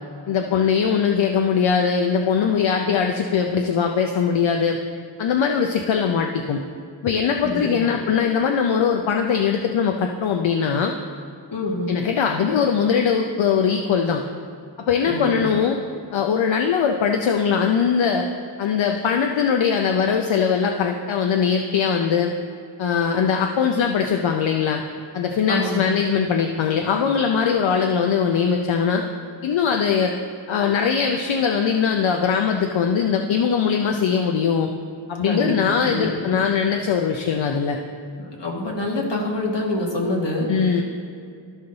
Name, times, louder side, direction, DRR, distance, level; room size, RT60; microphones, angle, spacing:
voice 1, 0.3-4.8 5.2-6.6 7.0-10.9 11.9-14.2 14.8-15.8 16.1-18.3 18.6-22.3 22.8-24.8 25.1-29.0 29.4-30.1 30.5-34.7 35.1-37.8 40.5-40.8, left 6 dB, 85° left, 3 dB, 0.6 m, -21 dB
voice 2, 7.4-7.9 11.5-12.0 15.1-15.6 25.5-25.9 35.2-36.3 38.2-40.5, left 1 dB, 65° left, -1 dB, 1.6 m, -26 dB
13.0 x 5.4 x 3.9 m, 2.4 s
wide cardioid pair, 75°, 45 cm